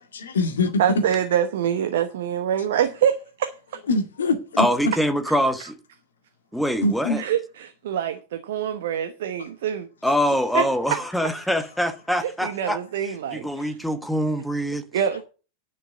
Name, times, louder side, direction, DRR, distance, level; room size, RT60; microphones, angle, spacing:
voice 1, 0.1-1.0 3.9-4.9 6.8-7.3, left 2 dB, 65° left, 2.0 m, -24 dB
voice 2, 0.8-3.5 7.2-9.9 10.5-10.7 12.4-13.7 14.9-15.2, right 9 dB, 55° right, 1.0 m, -25 dB
voice 3, 4.6-5.8 6.5-7.2 10.0-12.8 13.3-14.8, equal, ahead, 1.1 m, -24 dB
10.0 x 6.3 x 7.2 m
figure-of-eight pair, 90°, 0 cm